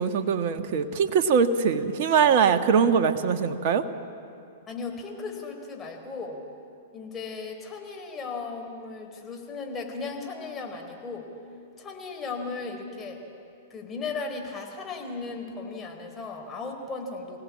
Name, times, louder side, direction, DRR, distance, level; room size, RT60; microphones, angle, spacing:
voice 1, 0.0-3.8, right 6 dB, 50° right, 7 dB, 1.6 m, -22 dB
voice 2, 4.7-6.4 6.9-11.3 11.8-13.2 13.7-17.4, left 4 dB, 20° left, 2 dB, 4.3 m, -36 dB
25.5 x 17.5 x 8.6 m, 2.8 s
hypercardioid pair, 110°, 0 cm